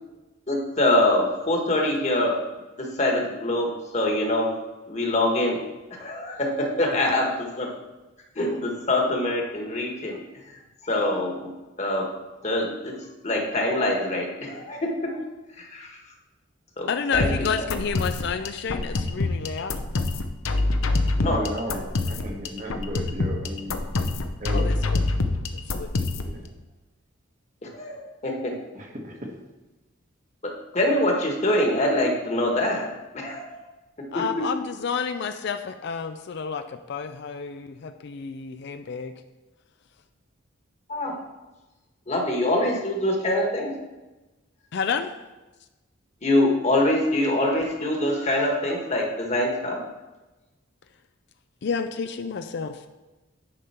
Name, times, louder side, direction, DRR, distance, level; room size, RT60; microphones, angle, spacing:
voice 1, 0.5-2.3 2.8-4.5 4.9-5.6 5.9-7.7 8.3-10.2 10.8-11.5 11.8-12.1 12.4-12.9 13.2-15.2 15.6-16.0 16.8-17.3 21.2-21.4 27.6-28.5 30.4-32.9 33.1-33.6 34.1-34.5 40.9-41.1 42.1-43.8 46.2-49.8, left 1 dB, 35° left, 1 dB, 1.4 m, -24 dB
voice 2, 16.9-19.8 24.5-25.0 25.5-26.2 34.1-39.1 44.7-45.1 51.6-52.9, left 6 dB, 60° left, 8 dB, 0.4 m, -30 dB
sound 1, 17.1-26.4, left 2 dB, 90° left, 0.7 m, -26 dB
voice 3, 21.1-23.8 24.4-24.9 26.2-26.5 28.7-29.2, right 1 dB, 40° right, 0 dB, 1.3 m, -35 dB
10.0 x 5.3 x 4.3 m, 1.1 s
head